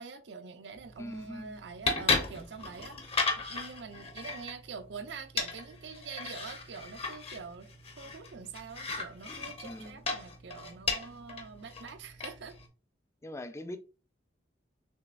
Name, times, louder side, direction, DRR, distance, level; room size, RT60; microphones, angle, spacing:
voice 1, 0.0-7.7 8.0-12.6, right 5 dB, 75° right, 0.5 m, -45 dB
sound 1, 0.7-12.7, left 4 dB, 35° left, 0.8 m, -36 dB
voice 2, 1.0-1.6 9.6-10.0 13.2-13.8, left 1 dB, 15° left, 0.4 m, -42 dB
6.2 x 3.0 x 2.5 m
head